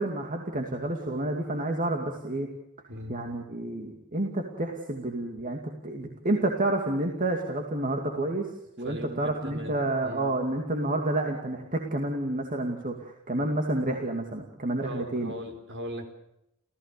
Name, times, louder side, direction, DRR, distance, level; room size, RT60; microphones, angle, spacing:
voice 1, 0.0-2.5 3.1-8.5 8.8-15.3, right 2 dB, 40° right, 2 dB, 2.5 m, -29 dB
voice 2, 8.8-9.8 10.0-10.3 14.8-16.1, equal, 55° right, 6 dB, 4.2 m, -38 dB
29.0 x 15.5 x 6.8 m, 0.84 s
head